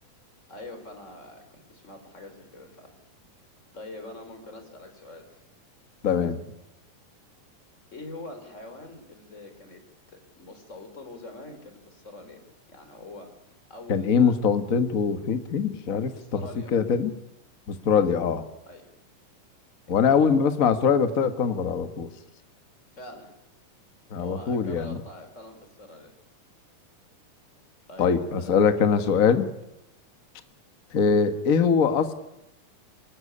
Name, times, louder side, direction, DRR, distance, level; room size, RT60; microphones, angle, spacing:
voice 1, 0.5-2.9 3.7-5.3 7.9-9.8 10.1-14.3 16.1-16.7 18.7-18.8 19.9-20.4 22.9-23.3 24.2-26.1 27.9-28.5, left 2 dB, 20° left, 6 dB, 4.1 m, -44 dB
voice 2, 6.0-6.4 13.9-16.4 16.7-17.1 17.7-18.4 19.9-22.1 24.1-25.0 28.0-29.5 30.9-32.1, left 6 dB, 85° left, 9 dB, 0.7 m, -22 dB
25.0 x 20.0 x 9.9 m, 0.88 s
omnidirectional pair, 4.1 m